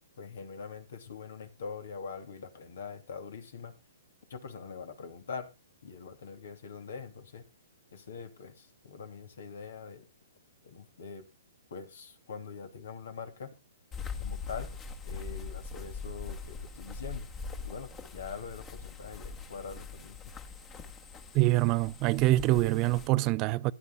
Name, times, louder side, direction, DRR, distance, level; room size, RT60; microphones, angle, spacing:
voice 1, 0.2-3.7 4.3-5.5 5.8-7.4 7.9-10.0 10.6-11.2 11.7-13.5 14.2-14.7 15.0-17.3 17.6-20.2, left 5 dB, 65° left, 2.7 m, -43 dB
sound 1, 13.9-23.1, left 5 dB, 25° left, 1.8 m, -42 dB
voice 2, 21.3-23.7, right 18 dB, 30° right, 0.5 m, -25 dB
18.0 x 11.0 x 2.2 m
hypercardioid pair, 125°, 0 cm